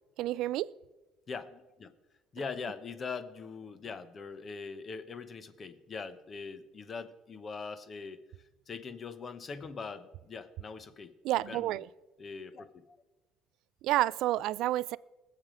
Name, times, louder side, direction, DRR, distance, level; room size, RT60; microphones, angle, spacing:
voice 1, 0.2-0.7 11.2-11.9 13.8-15.0, right 15 dB, 65° right, 0.3 m, -29 dB
voice 2, 1.3-1.9 2.3-8.2 8.7-11.8 12.2-13.0, left 5 dB, 30° left, 0.9 m, -42 dB
20.5 x 7.6 x 4.9 m
cardioid pair, 135°, 0 cm